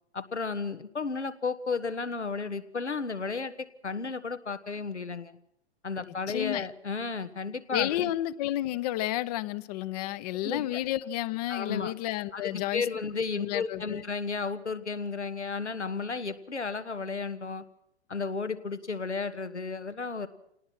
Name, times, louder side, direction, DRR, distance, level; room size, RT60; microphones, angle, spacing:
voice 1, 0.1-5.4 5.8-8.1 10.4-10.8 11.5-11.9 12.3-17.6 18.1-20.3, left 4 dB, 85° left, 1.5 m, -33 dB
voice 2, 6.1-6.7 7.7-12.8 13.4-14.0, left 14 dB, 35° left, 0.8 m, -31 dB
28.5 x 18.5 x 6.1 m
figure-of-eight pair, 110°, 34 cm